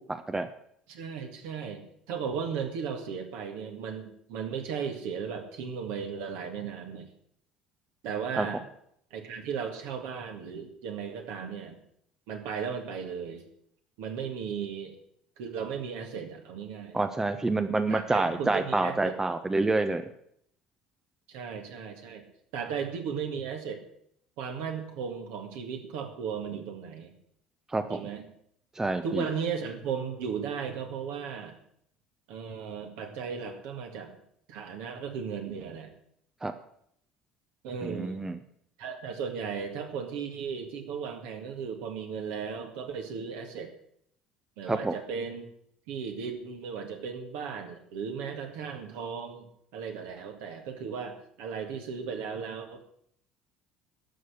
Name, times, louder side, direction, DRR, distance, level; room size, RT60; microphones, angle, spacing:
voice 1, 0.1-0.5 8.4-8.5 16.9-20.0 27.7-28.0 28.8-29.2 36.4-36.5 37.8-38.4 44.7-44.9, right 2 dB, 15° right, 10 dB, 0.7 m, -28 dB
voice 2, 0.9-1.8 2.1-7.1 8.0-8.6 9.1-11.8 12.3-13.5 14.0-15.0 15.4-17.0 17.9-19.1 21.3-22.2 22.5-23.8 24.4-27.1 27.9-28.2 29.0-31.6 32.3-34.1 34.5-35.9 37.6-38.2 38.8-43.7 44.6-45.5 45.9-52.8, right 6 dB, 60° right, 4 dB, 2.0 m, -36 dB
12.5 x 6.4 x 8.2 m, 0.69 s
figure-of-eight pair, 60°, 4 cm